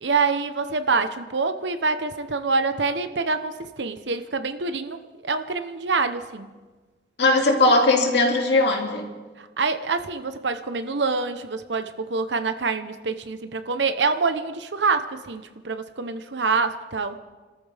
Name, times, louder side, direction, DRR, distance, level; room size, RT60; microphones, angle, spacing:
voice 1, 0.0-6.6 9.4-17.2, right 4 dB, 90° right, 1.0 m, -26 dB
voice 2, 7.2-9.1, left 2 dB, 75° left, 2.5 m, -19 dB
30.0 x 14.0 x 3.5 m
head